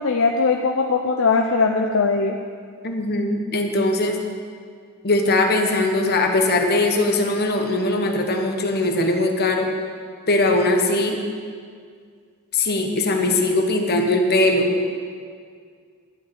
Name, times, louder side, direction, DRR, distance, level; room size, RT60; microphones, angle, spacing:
voice 1, 0.0-2.4, left 4 dB, 60° left, 2 dB, 0.6 m, -20 dB
voice 2, 2.8-4.2 5.0-9.7 10.3-11.2 12.5-14.7, left 2 dB, 45° left, 3 dB, 1.3 m, -20 dB
12.0 x 5.6 x 8.8 m, 2.1 s
head